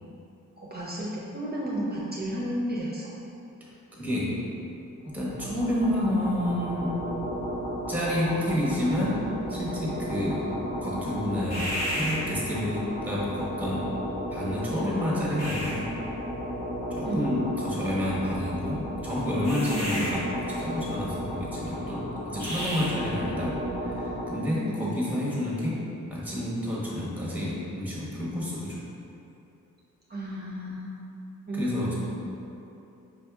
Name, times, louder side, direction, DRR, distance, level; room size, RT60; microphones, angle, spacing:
voice 1, 0.6-3.1 17.0-17.2 19.8-20.2 24.7-25.0 30.1-30.9 31.5-31.9, right 1 dB, 30° right, -5 dB, 0.6 m, -33 dB
voice 2, 4.0-4.4 5.0-7.0 7.9-10.5 10.8-13.9 14.3-15.9 16.9-20.2 20.5-28.8 31.5-31.9, left 1 dB, 5° right, -6 dB, 1.2 m, -29 dB
sound 1, 5.1-24.3, equal, 55° left, 1.2 m, -33 dB
5.5 x 2.7 x 3.5 m, 2.9 s
wide cardioid pair, 95°, 32 cm